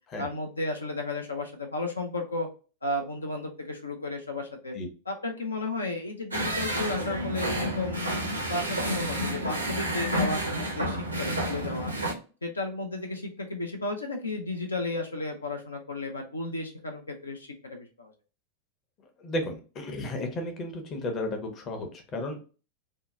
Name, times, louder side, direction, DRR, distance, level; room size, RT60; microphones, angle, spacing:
voice 1, 0.2-2.5 2.8-4.7 5.1-8.1 8.5-11.9 12.4-18.1, left 2 dB, 80° left, 3 dB, 0.4 m, -33 dB
sound 1, 6.3-12.1, equal, 85° right, 0.6 m, -30 dB
voice 2, 19.2-22.4, left 1 dB, 30° left, 4 dB, 0.6 m, -33 dB
2.7 x 2.1 x 2.4 m, 0.35 s
figure-of-eight pair, 90°, 0 cm